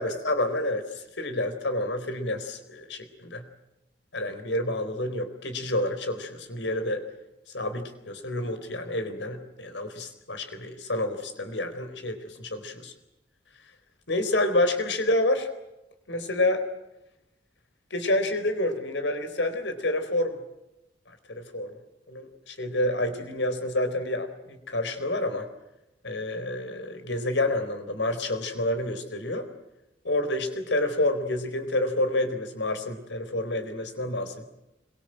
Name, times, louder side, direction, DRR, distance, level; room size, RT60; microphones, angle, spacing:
voice 1, 0.0-3.4 4.1-7.0 7.5-12.9 14.1-15.5 16.1-16.6 17.9-20.4 21.3-21.7 22.1-25.5 26.0-29.5 30.0-34.4, left 1 dB, 85° left, 9 dB, 4.2 m, -28 dB
26.5 x 23.0 x 7.7 m, 0.93 s
head